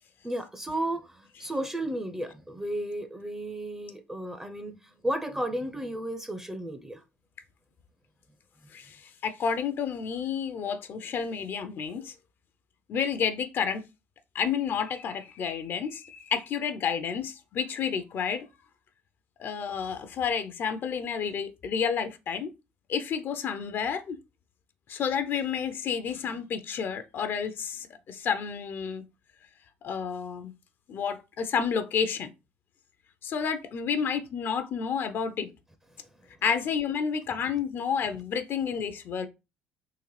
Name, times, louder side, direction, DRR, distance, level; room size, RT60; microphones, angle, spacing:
voice 1, 0.2-1.1 1.4-4.8 5.0-7.0, right 1 dB, 10° right, 0.5 m, -33 dB
voice 2, 8.7-12.1 12.9-13.8 14.3-18.5 19.4-22.5 22.9-24.2 24.9-29.0 29.8-30.5 30.9-32.3 33.2-35.5 36.4-39.3, left 7 dB, 50° left, 0.5 m, -30 dB
3.8 x 2.4 x 3.1 m
hypercardioid pair, 65°, 5 cm